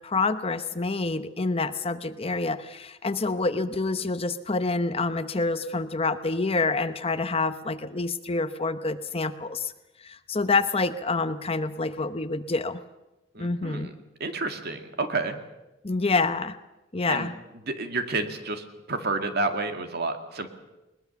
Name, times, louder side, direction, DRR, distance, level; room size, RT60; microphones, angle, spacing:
voice 1, 0.0-9.7 10.0-12.8 13.4-13.9 15.8-16.6 16.9-17.3, left 3 dB, 30° left, 11 dB, 0.8 m, -27 dB
voice 2, 13.3-13.9 14.2-15.4 17.1-17.3 17.7-20.5, right 3 dB, 55° right, 6 dB, 2.1 m, -30 dB
21.0 x 20.5 x 7.1 m, 1.0 s
head